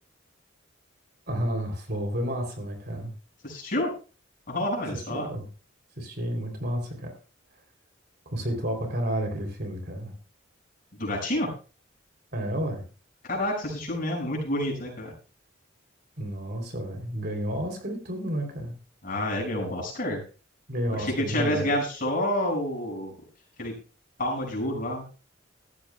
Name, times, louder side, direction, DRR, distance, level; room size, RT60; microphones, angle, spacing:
voice 1, 1.3-3.1 4.9-5.5 6.0-7.1 8.2-10.1 12.3-12.8 16.2-18.7 20.7-21.7, equal, 50° right, 4 dB, 3.3 m, -31 dB
voice 2, 3.4-3.9 4.5-5.3 11.0-11.5 13.2-15.1 19.0-20.2 20.9-23.1 23.6-23.7 24.2-25.0, left 1 dB, 45° left, -1 dB, 6.1 m, -28 dB
16.5 x 13.5 x 2.3 m, 0.36 s
head